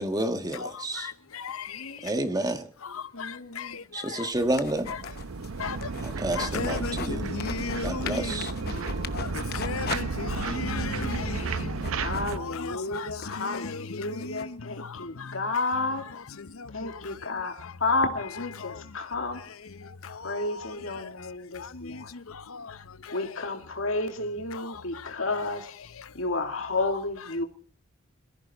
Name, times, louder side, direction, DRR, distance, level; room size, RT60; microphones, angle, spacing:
voice 1, 0.0-1.1 2.0-2.7 3.9-4.9 6.0-7.3 7.8-8.5, right 1 dB, 20° right, 1.5 m, -30 dB
voice 2, 1.0-2.1 2.8-4.3 5.6-5.9 6.4-15.4 16.4-17.2 17.6-17.7 18.6-19.1 19.8-20.5 21.0-21.1 21.5-23.2 24.5-25.1 26.0-26.1, left 5 dB, 90° left, 0.8 m, -37 dB
voice 3, 1.7-2.3 3.1-3.8 8.7-9.3 11.9-16.1 16.7-19.5 20.0-22.1 23.1-25.7 26.1-27.4, left 3 dB, 70° left, 2.4 m, -32 dB
sound 1, 4.3-7.1 7.4-10.0 10.4-10.5 10.9-14.4, left 6 dB, 50° left, 0.9 m, -40 dB
sound 2, 4.3-12.4, right 4 dB, 85° right, 0.7 m, -33 dB
21.5 x 14.5 x 4.3 m
head